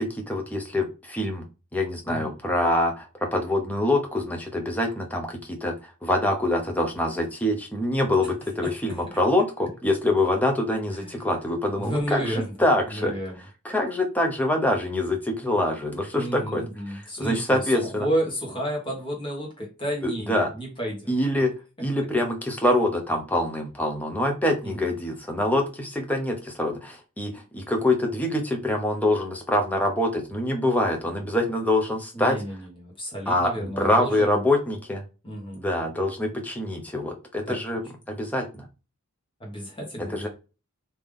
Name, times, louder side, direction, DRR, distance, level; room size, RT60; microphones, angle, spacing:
voice 1, 0.0-1.4 1.7-13.1 13.6-16.6 16.9-18.1 20.0-20.5 21.1-21.5 21.8-32.4 33.3-35.0 35.5-37.8 38.1-38.7 40.1-40.3, left 1 dB, 5° left, 3 dB, 0.7 m, -25 dB
voice 2, 2.0-2.3 8.9-9.0 10.9-11.2 11.8-12.5 12.9-13.4 16.1-21.1 24.6-24.9 32.1-34.4 35.2-35.6 37.5-37.6 39.4-40.3, right 1 dB, 25° left, -2 dB, 1.3 m, -31 dB
3.5 x 2.8 x 3.5 m, 0.32 s
head